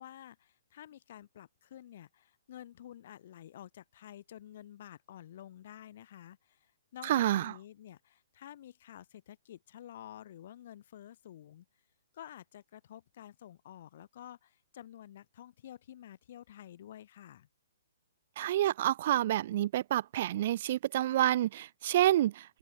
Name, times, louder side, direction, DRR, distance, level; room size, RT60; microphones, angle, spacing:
voice 1, 0.0-11.7 12.1-17.5, left 11 dB, 55° left, 1.1 m, -50 dB
voice 2, 7.0-7.5 18.4-22.6, right 13 dB, 50° right, 0.4 m, -28 dB
hypercardioid pair, 140°, 0 cm